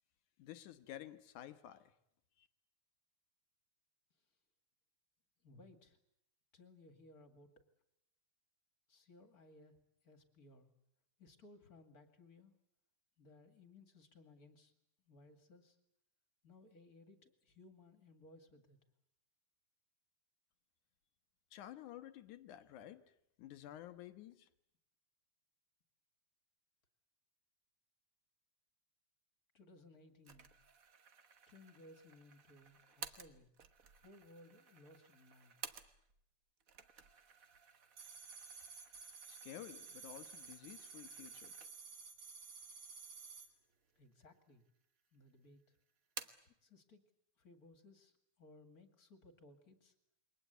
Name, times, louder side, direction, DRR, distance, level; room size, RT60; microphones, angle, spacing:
voice 1, 0.4-1.9 2.4-2.5 21.5-23.0 23.4-24.5 39.3-41.5, left 12 dB, 85° left, 2.7 m, -52 dB
voice 2, 5.4-6.0 6.5-7.5 8.9-9.7 10.0-10.7 11.2-12.5 13.2-14.7 15.0-15.8 16.4-18.8 29.5-30.5 31.5-33.5 34.0-35.6 44.0-44.7 45.1-45.6 46.4-47.0 47.4-49.9, left 2 dB, 30° left, 2.5 m, -61 dB
sound 1, 30.2-36.2 36.6-42.0 42.5-42.6 43.4-44.1 44.4-45.1 45.4-46.5, right 6 dB, 60° right, 0.8 m, -55 dB
sound 2, 38.0-43.5, right 5 dB, 45° right, 3.6 m, -53 dB
28.5 x 23.0 x 8.2 m
omnidirectional pair, 3.4 m